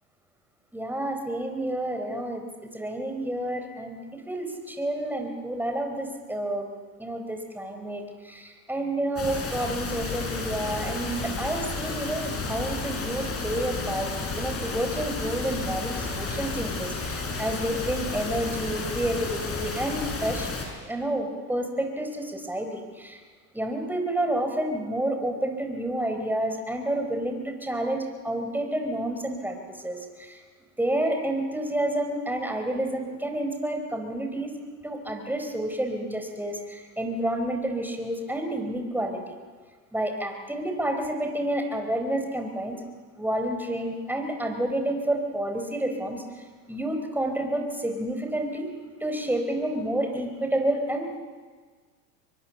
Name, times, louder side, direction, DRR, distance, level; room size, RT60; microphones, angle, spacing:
voice 1, 0.7-2.4 2.7-6.7 7.0-20.5 20.8-23.2 23.5-30.4 30.8-34.5 34.8-39.4 39.9-42.8 43.2-46.2 46.7-48.7 49.0-51.2, right 1 dB, 5° right, 5 dB, 4.0 m, -29 dB
sound 1, 9.2-20.7, left 3 dB, 30° left, 6.1 m, -32 dB
23.5 x 23.0 x 7.3 m, 1.5 s
hypercardioid pair, 100°, 49 cm